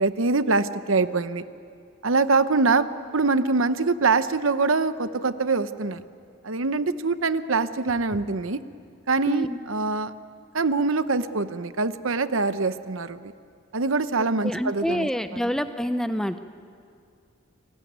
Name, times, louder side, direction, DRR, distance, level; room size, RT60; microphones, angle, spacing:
voice 1, 0.0-1.4 2.0-2.9 3.1-6.0 6.4-8.6 9.1-10.1 10.5-13.3 13.7-15.5, right 3 dB, 75° right, 12 dB, 0.9 m, -24 dB
voice 2, 9.3-9.6 14.4-16.4, equal, 5° left, 10 dB, 0.6 m, -27 dB
28.5 x 20.5 x 9.4 m, 2.3 s
head